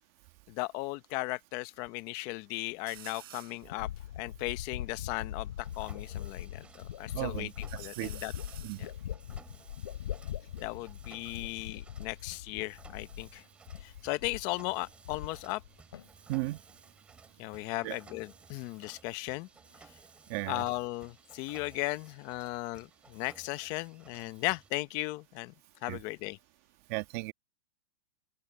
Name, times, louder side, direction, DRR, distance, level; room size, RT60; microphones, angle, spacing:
voice 1, 0.5-3.9 4.2-8.3 8.8-8.9 10.6-13.4 13.8-15.6 17.4-19.5 20.5-25.5 25.8-26.4, left 21 dB, 35° left, 0.8 m, -36 dB
sound 1, 2.9-3.7 4.3-4.4 4.5-6.1 6.6-7.2 7.6-11.0 11.9-13.8 14.1-14.6 16.1-18.8 19.1-19.9, right 12 dB, 75° right, 5.1 m, -55 dB
sound 2, 3.0-3.1 3.7-13.4 13.7-14.5 14.8-15.7 15.9-16.5, left 11 dB, 80° left, 4.2 m, -41 dB
Mechanisms, 5.6-24.7, right 4 dB, 10° right, 5.5 m, -58 dB
voice 2, 7.1-7.5 8.0-8.1 8.6-8.8 16.3-16.6 17.8-18.0 20.3-20.6 25.9-26.0 26.9-27.3, right 21 dB, 40° right, 1.6 m, -34 dB
open air
supercardioid pair, 160°, 12 cm